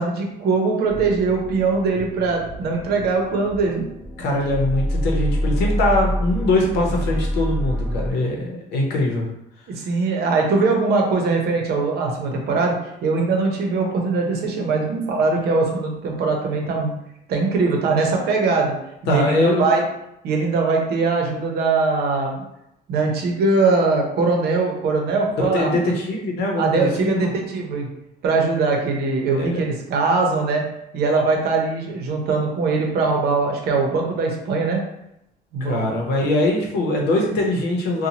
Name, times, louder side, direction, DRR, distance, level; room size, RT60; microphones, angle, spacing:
voice 1, 0.0-3.8 9.7-12.7 13.0-17.0 17.3-18.7 19.0-19.8 20.2-22.4 22.9-25.8 26.6-27.9 28.2-30.6 30.9-34.8 35.5-35.9, right 3 dB, 70° right, 1 dB, 0.7 m, -21 dB
sound 1, 0.9-8.1, equal, 5° left, 0.7 m, -27 dB
voice 2, 4.2-9.3 19.1-19.6 25.5-27.3 29.3-29.6 35.6-38.1, left 1 dB, 80° left, -1 dB, 0.8 m, -22 dB
2.9 x 2.2 x 2.8 m, 0.82 s
cardioid pair, 110°, 17 cm